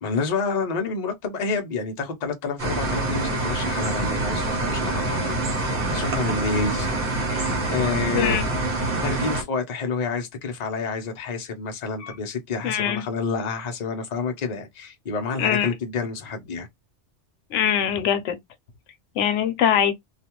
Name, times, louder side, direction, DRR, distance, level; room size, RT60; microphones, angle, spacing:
voice 1, 0.0-6.9 7.7-8.4 9.0-16.7, left 4 dB, 45° left, 0.7 m, -28 dB
sound 1, 2.6-9.4, right 2 dB, 55° right, 1.0 m, -26 dB
voice 2, 8.1-8.5 12.0-12.2 12.6-13.0 15.4-15.7 17.5-18.4 19.2-19.9, left 9 dB, 90° left, 0.9 m, -23 dB
2.4 x 2.3 x 2.8 m
omnidirectional pair, 1.2 m